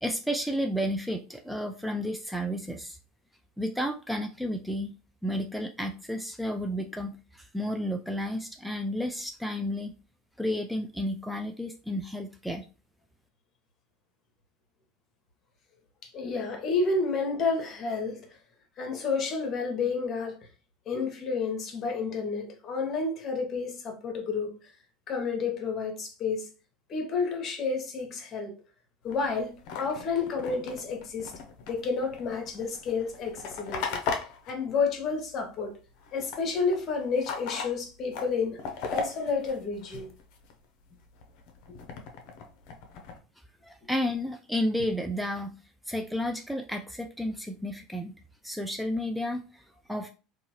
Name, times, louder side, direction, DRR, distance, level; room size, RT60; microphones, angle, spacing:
voice 1, 0.0-3.0 3.6-5.0 5.2-10.0 10.4-12.7 43.6-45.6 45.9-50.1, equal, ahead, 0.3 m, -32 dB
voice 2, 16.0-18.4 18.8-20.5 20.9-24.7 25.1-26.5 26.9-28.6 29.0-31.3 31.7-34.0 34.5-35.8 36.1-38.6 38.9-40.1 41.7-41.8, left 4 dB, 40° left, 1.0 m, -30 dB
sound 1, 29.1-35.7 35.9-40.5 40.9-43.2, left 5 dB, 65° left, 0.6 m, -38 dB
2.8 x 2.3 x 2.8 m
hypercardioid pair, 90°, 0 cm